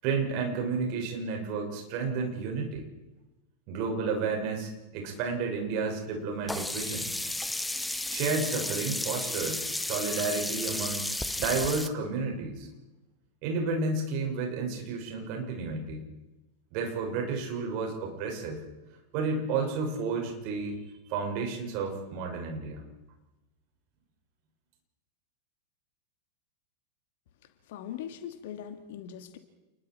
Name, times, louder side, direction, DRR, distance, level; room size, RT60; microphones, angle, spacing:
voice 1, 0.0-2.9 3.7-7.1 8.1-11.1 11.4-12.7 13.4-16.0 16.7-18.6 19.1-20.8 21.1-22.8, right 4 dB, 45° right, 2 dB, 6.3 m, -31 dB
Sink (filling or washing), 6.5-11.9, left 1 dB, 5° left, 1.0 m, -33 dB
voice 2, 27.7-29.4, left 9 dB, 55° left, 8 dB, 2.3 m, -40 dB
29.5 x 22.0 x 4.7 m, 1.1 s
figure-of-eight pair, 90°, 0 cm